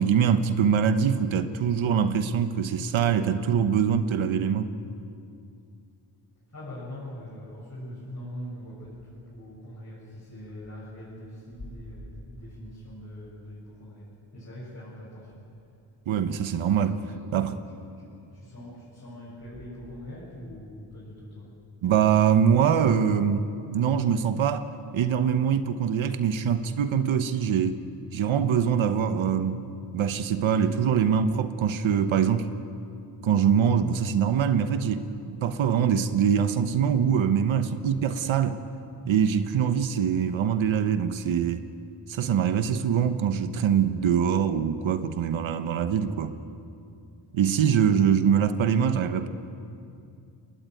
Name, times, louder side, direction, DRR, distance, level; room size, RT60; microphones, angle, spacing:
voice 1, 0.0-4.7 16.1-17.0 17.3-17.6 21.8-24.7 24.9-27.8 28.1-32.5 33.2-38.6 39.0-41.6 42.1-46.3 47.3-49.3, right 7 dB, 90° right, 10 dB, 1.2 m, -23 dB
voice 2, 6.5-15.5 16.7-17.3 17.7-21.6, left 1 dB, 35° left, -8 dB, 7.2 m, -42 dB
23.0 x 18.5 x 9.3 m, 2.5 s
cardioid pair, 90°, 46 cm